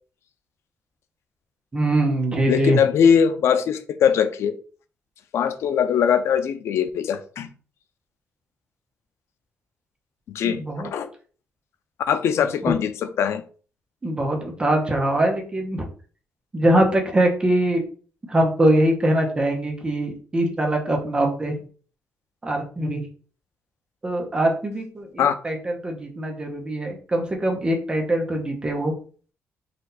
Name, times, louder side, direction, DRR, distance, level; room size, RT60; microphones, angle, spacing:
voice 1, 1.7-2.8 10.4-10.9 12.7-12.8 14.0-15.9 16.5-17.8 18.3-21.6 22.4-23.0 24.0-29.0, right 1 dB, 20° right, 1.0 m, -22 dB
voice 2, 2.5-4.6 5.3-7.5 10.3-11.1 12.1-13.4 25.2-25.3, left 7 dB, 70° left, 0.5 m, -21 dB
4.2 x 2.7 x 4.0 m
cardioid pair, 145°, 5 cm